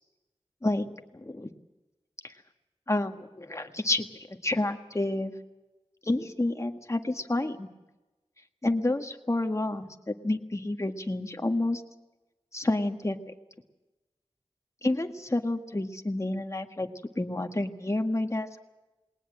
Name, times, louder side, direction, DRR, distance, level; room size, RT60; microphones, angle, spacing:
voice 1, 0.6-1.5 2.2-2.3 2.9-5.3 6.0-7.7 8.6-11.8 12.5-13.2 14.8-16.9 17.2-18.5, left 2 dB, 30° left, 6 dB, 1.7 m, -29 dB
20.5 x 19.5 x 7.6 m, 1.1 s
wide cardioid pair, 60°, 11 cm